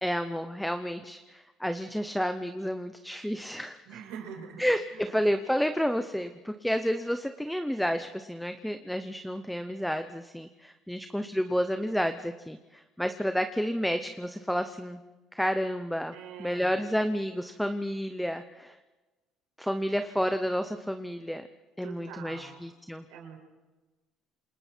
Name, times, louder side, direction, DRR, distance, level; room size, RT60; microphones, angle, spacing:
voice 1, 0.0-3.8 4.6-15.0 15.3-16.1 16.4-18.8 19.6-21.4 21.8-23.0, equal, ahead, 8 dB, 0.8 m, -30 dB
voice 2, 3.9-5.3 16.1-16.9 21.8-22.7 23.1-23.4, right 7 dB, 85° right, 2 dB, 5.6 m, -44 dB
28.0 x 28.0 x 4.5 m, 1.2 s
cardioid pair, 150°, 0 cm